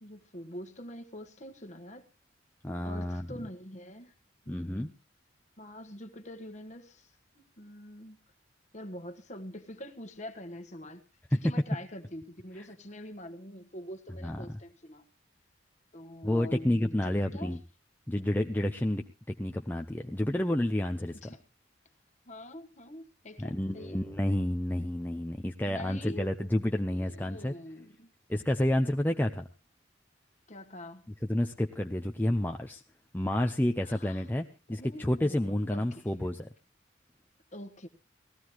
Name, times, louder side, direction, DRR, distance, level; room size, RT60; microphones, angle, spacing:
voice 1, 0.0-2.1 2.8-4.1 4.4-5.0 5.6-8.2 8.7-11.0 11.4-15.0 15.9-17.6 21.2-21.4 22.3-24.0 25.7-26.3 26.9-28.1 30.5-31.0 33.8-34.2 34.7-36.1 37.5-37.9, left 1 dB, 40° left, 1.4 m, -45 dB
voice 2, 2.6-3.3 4.5-4.9 14.2-14.4 16.2-17.6 18.1-21.3 23.4-27.5 28.3-29.5 31.3-32.8 33.1-36.5, left 1 dB, 10° left, 0.6 m, -30 dB
19.0 x 15.0 x 3.0 m
head